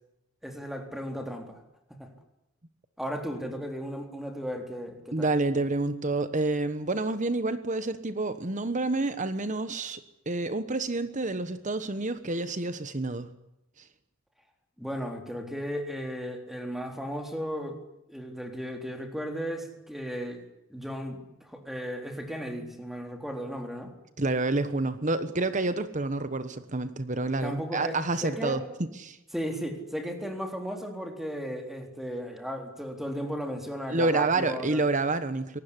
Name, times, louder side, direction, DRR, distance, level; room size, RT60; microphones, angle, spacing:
voice 1, 0.4-1.6 2.0-2.1 3.0-5.3 14.8-17.8 18.1-23.9 27.4-28.6 29.3-34.8, equal, ahead, 4 dB, 3.8 m, -35 dB
voice 2, 5.1-10.0 10.3-13.3 24.2-28.6 29.0-29.2 33.9-35.6, right 2 dB, 35° right, 11 dB, 1.2 m, -28 dB
24.5 x 19.0 x 10.0 m, 0.89 s
head